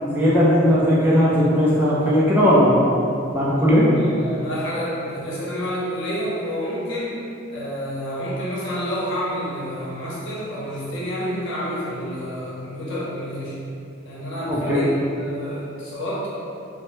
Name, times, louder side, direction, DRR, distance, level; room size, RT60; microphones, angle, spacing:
voice 1, 0.0-2.8 3.3-3.9 14.5-14.8, equal, 10° right, -8 dB, 0.4 m, -17 dB
voice 2, 3.9-7.2 7.5-13.6 14.0-14.9 15.1-16.3, equal, 70° left, -8 dB, 0.8 m, -29 dB
2.6 x 2.1 x 3.0 m, 2.6 s
head